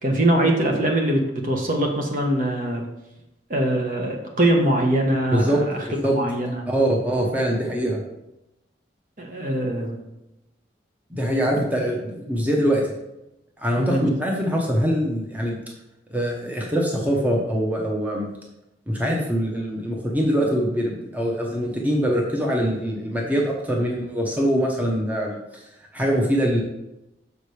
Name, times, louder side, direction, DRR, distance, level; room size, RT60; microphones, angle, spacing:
voice 1, 0.0-2.9 3.5-6.6 9.2-10.0 13.8-14.1, right 1 dB, 45° right, 1 dB, 1.2 m, -22 dB
voice 2, 6.7-8.0 11.1-12.8 13.6-15.6 16.1-18.3 18.9-25.6 25.9-26.6, equal, 10° right, -1 dB, 0.9 m, -23 dB
6.6 x 5.0 x 4.9 m, 0.90 s
head